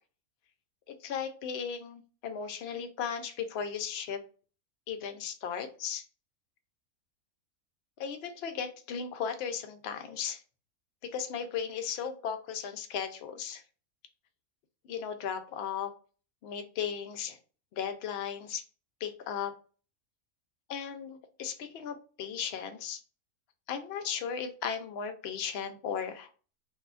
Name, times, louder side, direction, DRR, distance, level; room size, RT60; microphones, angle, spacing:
voice 1, 1.0-4.2 4.9-6.0 8.0-10.4 11.0-13.6 14.9-15.9 16.4-17.4 17.7-18.6 19.0-19.5 20.7-23.0 23.7-26.3, left 7 dB, 70° left, 7 dB, 0.6 m, -36 dB
2.7 x 2.2 x 2.3 m, 0.38 s
omnidirectional pair, 1.5 m